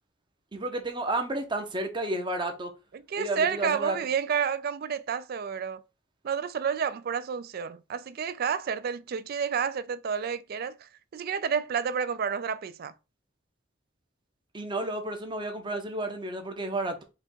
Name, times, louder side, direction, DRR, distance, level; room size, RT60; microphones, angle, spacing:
voice 1, 0.5-2.7 3.2-4.0 14.5-17.0, right 2 dB, 25° right, 0.8 m, -31 dB
voice 2, 2.9-5.8 6.2-12.9, right 7 dB, 50° right, 0.4 m, -30 dB
5.1 x 2.4 x 4.4 m
head